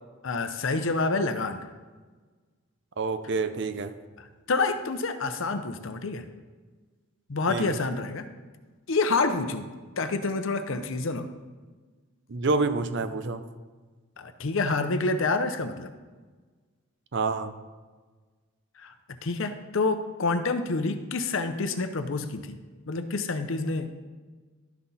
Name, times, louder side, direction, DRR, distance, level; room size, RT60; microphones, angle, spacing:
voice 1, 0.2-1.6 4.5-6.3 7.3-8.3 8.9-9.6 10.0-11.3 14.2-15.9 18.8-18.9 19.2-22.6 22.9-23.9, left 3 dB, 60° left, 9 dB, 0.6 m, -28 dB
voice 2, 3.0-3.9 7.5-7.8 12.3-13.4 17.1-17.5, right 3 dB, 55° right, 11 dB, 0.5 m, -28 dB
12.0 x 5.8 x 4.1 m, 1.4 s
head